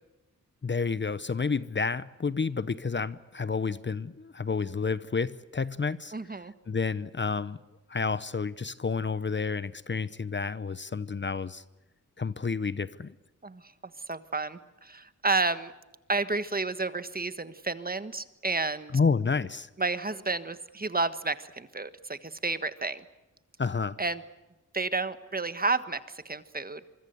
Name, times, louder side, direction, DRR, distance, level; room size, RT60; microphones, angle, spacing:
voice 1, 0.6-6.1 6.7-7.6 7.9-11.6 12.2-13.1 18.9-19.7 23.6-24.0, left 5 dB, 35° left, 16 dB, 0.8 m, -30 dB
voice 2, 6.1-6.5 13.4-13.7 14.1-15.7 16.1-18.9 19.8-23.0 24.0-24.2 24.7-26.8, right 3 dB, 30° right, 12 dB, 1.4 m, -31 dB
25.5 x 24.0 x 7.9 m, 1.0 s
cardioid pair, 65°, 31 cm